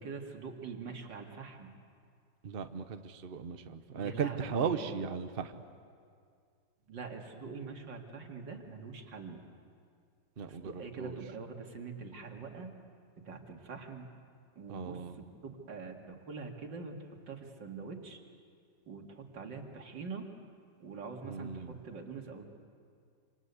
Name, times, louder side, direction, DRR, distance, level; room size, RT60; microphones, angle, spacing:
voice 1, 0.0-1.7 3.9-5.1 6.9-9.4 10.5-12.7 13.2-14.1 14.6-18.2 18.9-20.3 20.8-22.5, right 4 dB, 85° right, 3 dB, 2.8 m, -44 dB
voice 2, 2.4-5.5 10.4-11.2 14.7-15.2 21.2-21.8, right 6 dB, 40° right, 9 dB, 1.0 m, -37 dB
26.5 x 26.5 x 8.3 m, 2.3 s
omnidirectional pair, 1.9 m